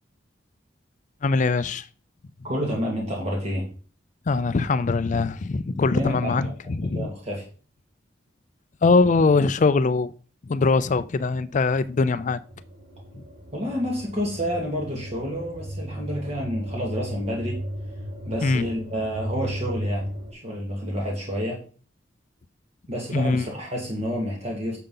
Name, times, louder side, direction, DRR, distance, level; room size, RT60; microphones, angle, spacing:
voice 1, 1.2-1.9 4.3-7.1 8.8-10.1 10.4-12.4 13.2-13.3 18.4-18.6 23.1-23.5, left 4 dB, 40° left, 0.4 m, -22 dB
voice 2, 2.4-3.6 5.9-6.5 6.9-7.4 13.5-17.6 18.3-21.6 22.9-24.8, equal, 35° right, 2.2 m, -29 dB
sound 1, 11.4-20.3, equal, 80° right, 5.3 m, -35 dB
10.0 x 6.8 x 3.9 m
head